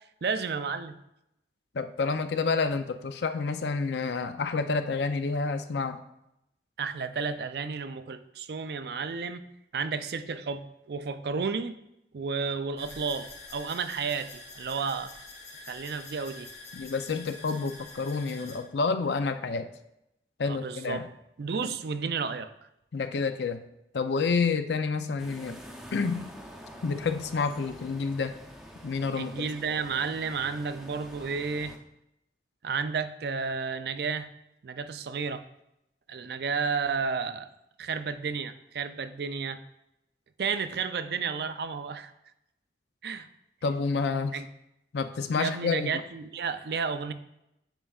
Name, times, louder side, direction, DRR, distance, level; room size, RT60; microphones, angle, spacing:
voice 1, 0.2-1.0 6.8-9.4 9.7-11.7 12.1-15.1 15.7-16.5 20.4-21.1 21.4-22.5 29.2-31.8 32.6-34.3 34.6-35.4 36.1-37.5 37.8-39.6 40.4-42.1 43.0-43.3 44.3-44.5 45.4-47.1, right 5 dB, 65° right, 11 dB, 0.4 m, -32 dB
voice 2, 1.7-6.0 16.7-19.7 20.4-21.0 21.6-21.8 22.9-23.6 23.9-25.6 25.9-26.3 26.8-28.3 28.8-29.3 43.6-44.4 44.9-45.9, left 4 dB, 75° left, 9 dB, 0.5 m, -29 dB
sound 1, 12.8-18.6, left 3 dB, 40° left, 1.1 m, -46 dB
sound 2, 25.2-31.8, equal, ahead, 0.6 m, -47 dB
9.0 x 5.2 x 2.4 m, 0.83 s
head